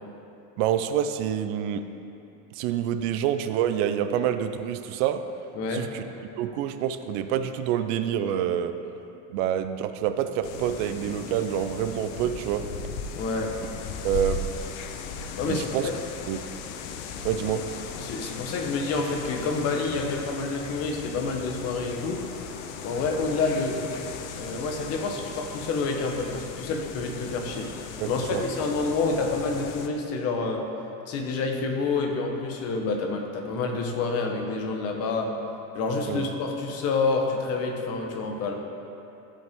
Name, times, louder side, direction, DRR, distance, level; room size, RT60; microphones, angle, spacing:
voice 1, 0.6-1.8 2.6-5.2 5.7-6.0 6.4-8.7 9.3-12.6 14.0-14.4 15.5-15.9 16.3-16.4 17.2-17.6 28.0-28.4 36.1-36.3, right 10 dB, 60° right, 9 dB, 0.6 m, -27 dB
voice 2, 5.5-5.9 13.2-13.5 15.4-16.0 18.0-22.2 22.8-23.8 24.3-30.6 31.1-35.3 35.7-38.5, left 3 dB, 35° left, 2 dB, 1.1 m, -28 dB
sound 1, 10.4-29.9, left 5 dB, 75° left, 0.8 m, -37 dB
14.5 x 5.4 x 3.6 m, 2.8 s
cardioid pair, 165°, 41 cm